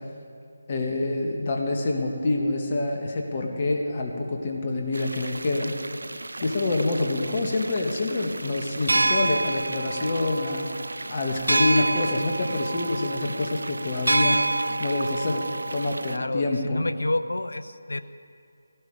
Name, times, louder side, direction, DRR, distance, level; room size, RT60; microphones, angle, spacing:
voice 1, 0.7-5.8 6.4-10.7 11.1-14.4 14.8-16.8, left 2 dB, 35° left, 1 dB, 1.9 m, -26 dB
sound 1, 4.9-16.2, right 2 dB, 80° right, 0.4 m, -29 dB
voice 2, 16.1-18.0, left 2 dB, 80° left, 11 dB, 0.8 m, -29 dB
17.0 x 16.5 x 5.0 m, 2.4 s
figure-of-eight pair, 160°, 0 cm